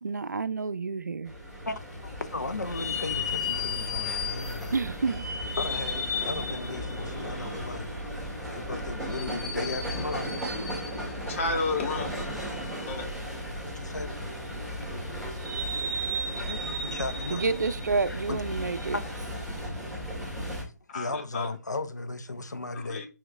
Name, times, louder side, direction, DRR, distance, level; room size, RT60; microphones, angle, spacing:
voice 1, 0.0-1.3 4.7-5.2 17.3-19.0, right 4 dB, 85° right, 0.6 m, -29 dB
sound 1, 1.3-20.6, left 1 dB, ahead, 1.9 m, -34 dB
voice 2, 1.7-4.7 5.6-7.9 8.4-10.4 13.7-14.2 15.9-16.0 16.4-17.4 18.1-18.4 20.6-23.1, left 3 dB, 90° left, 0.9 m, -36 dB
voice 3, 11.3-12.1 12.8-13.1 20.9-21.5 22.7-23.1, left 3 dB, 50° left, 1.7 m, -31 dB
5.7 x 5.1 x 3.2 m
figure-of-eight pair, 140°, 9 cm